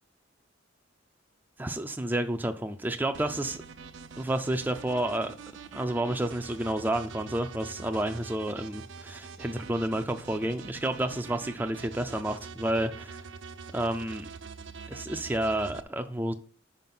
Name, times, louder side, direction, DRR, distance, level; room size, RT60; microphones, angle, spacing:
voice 1, 1.6-3.6 4.2-5.4 5.7-13.3 13.7-14.3 14.9-16.3, right 1 dB, 10° right, 0.4 m, -30 dB
sound 1, 3.1-15.8, right 5 dB, 65° right, 0.5 m, -44 dB
5.4 x 5.1 x 5.8 m
head